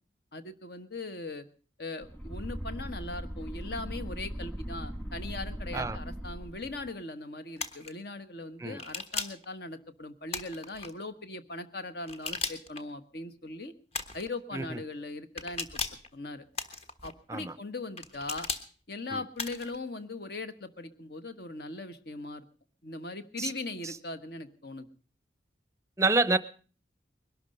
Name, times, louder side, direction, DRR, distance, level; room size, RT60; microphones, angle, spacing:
voice 1, 0.3-1.4 1.8-13.7 14.1-15.8 16.1-16.4 17.0-18.5 18.9-22.4 22.8-24.9, left 2 dB, 60° left, 11 dB, 1.3 m, -40 dB
sound 1, 2.0-6.9, equal, 10° left, 1.5 m, -39 dB
sound 2, 7.6-7.9 8.8-9.4 10.3-10.9 12.1-12.8 13.9-14.3 15.4-16.1 16.5-17.1 18.0-18.6 19.4-19.8, left 3 dB, 35° left, 1.4 m, -36 dB
voice 2, 26.0-26.4, right 3 dB, 15° right, 14 dB, 0.7 m, -28 dB
21.5 x 12.0 x 5.4 m, 0.40 s
head